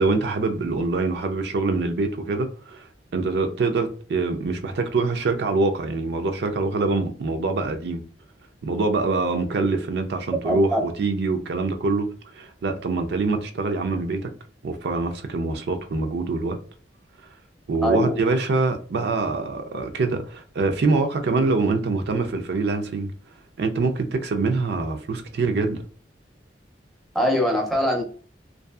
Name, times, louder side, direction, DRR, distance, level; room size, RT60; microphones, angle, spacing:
voice 1, 0.0-8.0 8.6-12.1 12.3-14.3 14.6-16.6 17.7-23.1 23.6-25.8, right 3 dB, 65° right, 0.4 m, -24 dB
voice 2, 10.4-10.8 17.8-18.2 27.1-28.0, equal, ahead, 0.5 m, -22 dB
2.6 x 2.3 x 2.3 m
head